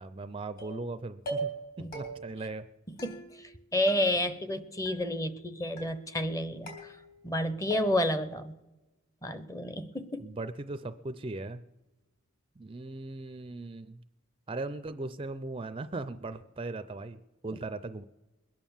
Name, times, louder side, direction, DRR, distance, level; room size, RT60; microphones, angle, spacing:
voice 1, 0.0-1.5 1.8-2.7 10.2-11.6 12.6-14.0 14.5-18.0, right 2 dB, 25° right, 12 dB, 0.5 m, -38 dB
sound 1, 0.6-0.9 1.3-1.7 1.9-2.4 3.0-3.6 3.9-4.5 4.9-5.4 5.8-6.3 6.7-7.4 7.7-8.2, right 3 dB, 45° left, 4.0 m, -40 dB
voice 2, 3.0-6.7 7.2-8.5 9.2-10.3, left 1 dB, 15° left, 12 dB, 0.8 m, -30 dB
21.5 x 9.2 x 7.2 m, 1.1 s
head